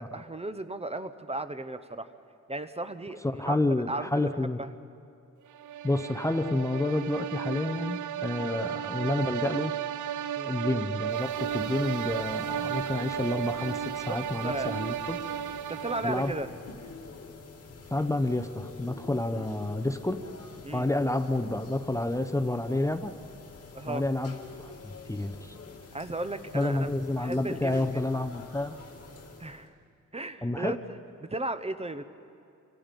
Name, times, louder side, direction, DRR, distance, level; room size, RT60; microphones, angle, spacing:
voice 1, 0.0-2.1 2.5-3.6 3.9-4.7 8.3-8.5 10.4-10.5 14.1-14.8 15.7-16.5 19.3-19.5 20.6-20.8 23.7-24.0 25.9-28.0 29.4-29.7 30.1-30.8 31.2-32.0, right 2 dB, 20° right, 11 dB, 0.8 m, -35 dB
voice 2, 3.2-4.6 5.8-9.7 10.4-15.2 16.0-16.3 17.9-20.2 20.7-23.1 23.9-24.7 25.1-25.5 26.5-28.8 30.4-30.8, left 2 dB, 10° left, 8 dB, 0.7 m, -29 dB
sound 1, 5.5-16.5, right 10 dB, 75° right, 0.6 m, -34 dB
sound 2, 11.0-29.7, left 4 dB, 55° left, 2.7 m, -47 dB
28.5 x 26.0 x 5.3 m, 2.4 s
wide cardioid pair, 130°, 30 cm